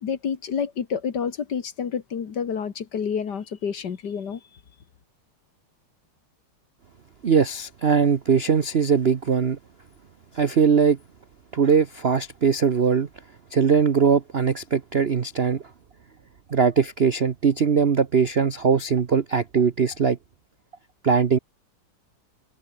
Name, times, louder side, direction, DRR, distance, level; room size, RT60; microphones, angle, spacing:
voice 1, 0.0-4.4, left 7 dB, 55° left, 2.1 m, -29 dB
voice 2, 7.2-9.6 10.3-11.0 11.5-13.1 13.5-15.6 16.5-20.2 21.0-21.4, right 6 dB, 50° right, 0.7 m, -20 dB
omnidirectional pair, 2.4 m